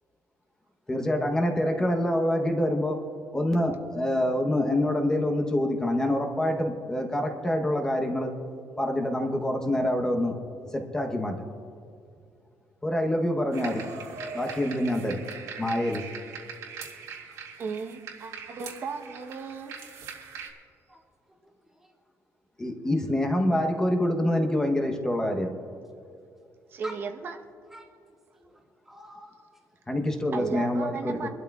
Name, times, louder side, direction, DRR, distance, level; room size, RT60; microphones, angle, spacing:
voice 1, 0.9-3.0 3.3-8.3 8.8-10.4 10.7-11.4 12.8-13.9 14.3-15.2 15.6-16.1 22.6-25.5 29.9-31.3, left 1 dB, 10° left, 3 dB, 0.9 m, -26 dB
sound 1, 13.5-20.5, right 5 dB, 75° right, 2.0 m, -41 dB
voice 2, 17.6-19.8 26.7-27.4 30.3-31.3, right 5 dB, 40° right, 5 dB, 0.9 m, -35 dB
voice 3, 21.3-21.9 25.6-25.7 26.8-27.0 27.7-27.9 28.4-29.5, equal, 5° right, -2 dB, 1.8 m, -47 dB
25.0 x 12.5 x 2.3 m, 2.4 s
cardioid pair, 175°, 6 cm